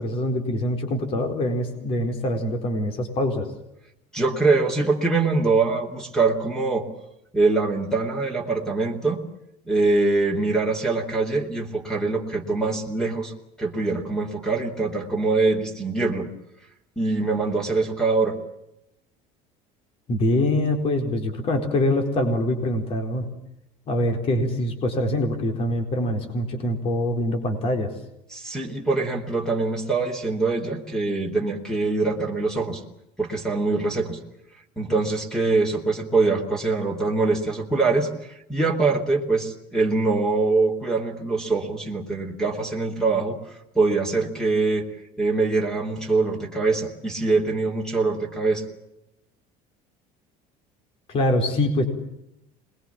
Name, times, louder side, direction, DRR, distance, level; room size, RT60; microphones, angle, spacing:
voice 1, 0.0-3.5 20.1-23.3 23.9-27.9 51.1-51.9, left 1 dB, 40° left, 5 dB, 4.4 m, -24 dB
voice 2, 4.1-6.9 7.3-9.2 9.7-13.3 13.6-16.3 17.0-18.4 28.3-32.8 33.2-34.2 34.8-38.1 38.5-43.4 43.7-44.9 45.2-48.6, right 3 dB, 5° left, 4 dB, 3.1 m, -23 dB
27.0 x 21.5 x 7.3 m, 0.83 s
cardioid pair, 165°, 15 cm